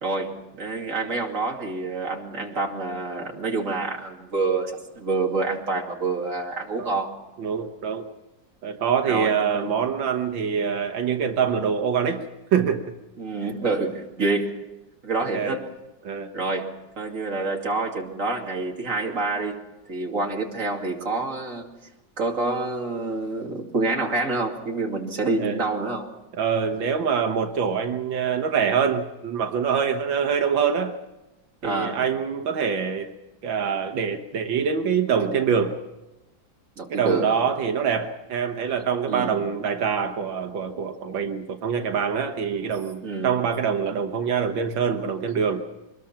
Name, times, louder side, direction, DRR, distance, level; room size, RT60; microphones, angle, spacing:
voice 1, 0.0-7.1 9.1-9.7 13.2-14.6 15.0-15.7 16.3-16.7 17.0-19.6 19.9-21.7 22.2-26.1 31.6-32.0 36.8-37.3 39.1-39.4 43.0-43.4, right 3 dB, 40° right, 1 dB, 3.0 m, -27 dB
voice 2, 7.4-8.1 8.6-12.2 12.5-12.8 15.3-15.6 16.0-16.3 25.4-25.6 26.3-30.9 31.6-33.1 33.4-35.8 36.9-45.6, right 6 dB, 85° right, 5 dB, 2.0 m, -25 dB
24.5 x 21.0 x 5.8 m, 1.0 s
omnidirectional pair, 2.1 m